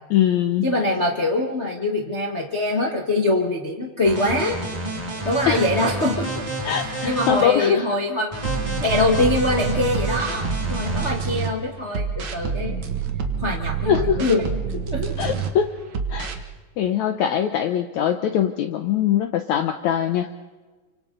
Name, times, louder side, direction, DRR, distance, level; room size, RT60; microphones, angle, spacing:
voice 1, 0.1-0.7 5.5-5.6 6.6-7.9 13.9-14.2 15.2-15.7 16.1-16.3 16.8-20.3, left 9 dB, 80° left, 7 dB, 1.7 m, -22 dB
voice 2, 0.6-4.6 5.2-6.4 6.8-8.5 8.8-12.8 13.4-14.5 14.7-15.2, left 2 dB, 55° left, 0 dB, 0.7 m, -23 dB
sound 1, 4.0-7.4 8.3-11.1, right 1 dB, 10° right, 4.9 m, -29 dB
sound 2, 8.4-11.5 11.9-15.5 15.9-16.4, right 6 dB, 55° right, 1.4 m, -27 dB
29.5 x 25.5 x 3.9 m, 1.3 s
omnidirectional pair, 4.2 m